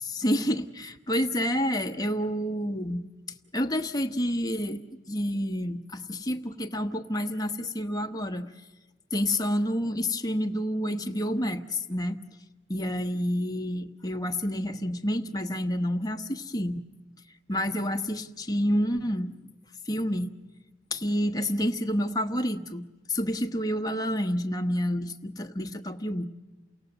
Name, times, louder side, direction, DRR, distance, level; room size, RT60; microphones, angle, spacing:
voice 1, 0.0-3.0 3.5-4.8 5.1-8.5 9.1-12.2 12.7-16.8 17.5-19.3 19.9-20.3 20.9-26.3, equal, 20° left, 6 dB, 1.1 m, -29 dB
29.5 x 18.5 x 8.0 m, 1.2 s
head